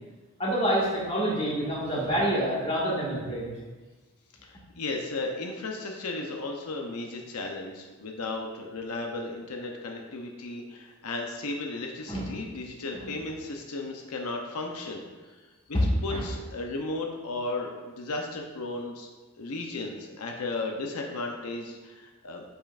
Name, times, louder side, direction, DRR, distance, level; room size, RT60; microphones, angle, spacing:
voice 1, 0.4-3.5 12.1-12.2 13.0-13.1 16.1-16.2, right 1 dB, 25° left, -6 dB, 1.7 m, -27 dB
voice 2, 4.4-15.0 15.3-15.4 15.7-19.1 19.4-22.4, left 2 dB, 90° left, 2 dB, 0.7 m, -35 dB
8.9 x 5.4 x 2.5 m, 1.3 s
head